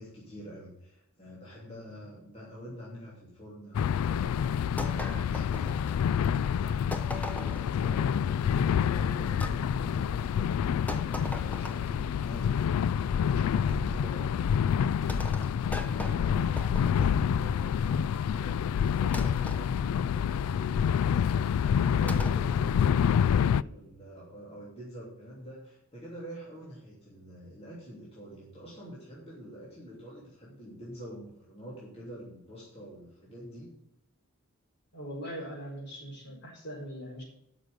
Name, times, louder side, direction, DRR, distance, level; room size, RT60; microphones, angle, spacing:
voice 1, 0.0-33.7, equal, 25° left, -6 dB, 3.0 m, -46 dB
sound 1, 3.7-23.6, left 8 dB, 85° left, 0.3 m, -27 dB
sound 2, 4.8-6.2 6.9-7.7 9.4-9.6 10.9-12.0 13.7-14.1 15.1-17.2 19.1-19.6 22.1-22.5, equal, 5° left, 0.8 m, -38 dB
voice 2, 34.9-37.2, equal, 50° left, -1 dB, 4.7 m, -41 dB
11.5 x 6.3 x 6.6 m, 0.78 s
head